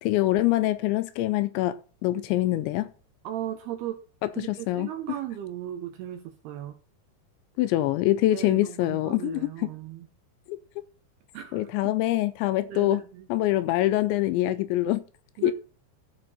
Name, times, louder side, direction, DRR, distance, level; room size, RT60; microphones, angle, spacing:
voice 1, 0.0-1.8 2.0-2.9 4.4-4.9 7.6-9.7 10.5-10.6 11.5-13.0 13.3-15.0 15.4-15.5, left 15 dB, 80° left, 2.8 m, -24 dB
voice 2, 3.2-4.0 4.3-6.8 8.3-10.1 11.3-11.7 12.7-13.3 15.4-15.5, right 12 dB, 80° right, 2.3 m, -36 dB
14.5 x 5.2 x 4.1 m
omnidirectional pair, 5.5 m